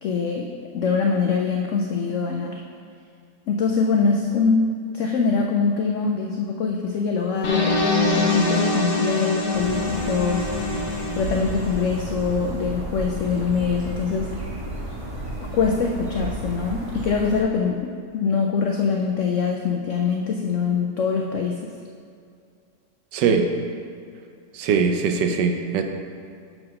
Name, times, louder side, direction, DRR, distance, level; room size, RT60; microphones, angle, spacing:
voice 1, 0.0-2.6 3.5-7.8 8.1-10.5 11.1-14.3 15.4-21.7, left 5 dB, 85° left, 2 dB, 0.6 m, -23 dB
sound 1, 7.4-12.4, left 2 dB, 65° left, 1.5 m, -24 dB
sound 2, 9.5-17.4, right 1 dB, 20° right, 1.3 m, -33 dB
voice 2, 23.1-23.5 24.5-25.8, right 5 dB, 80° right, 5 dB, 1.2 m, -21 dB
6.1 x 4.6 x 6.3 m, 2.3 s
omnidirectional pair, 1.9 m